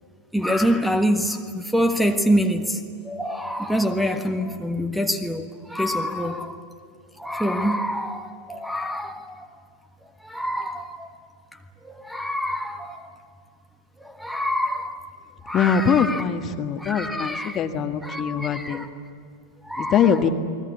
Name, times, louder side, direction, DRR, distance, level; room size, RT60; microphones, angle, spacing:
voice 1, 0.3-6.6 7.2-9.5 10.2-11.1 11.8-13.1 14.0-15.0 15.4-16.2 16.8-17.6 18.0-18.9 19.6-20.2, equal, ahead, 1.5 m, -26 dB
voice 2, 15.5-18.8 19.8-20.3, left 7 dB, 30° left, 1.6 m, -22 dB
29.5 x 21.5 x 8.4 m
figure-of-eight pair, 90°, 0 cm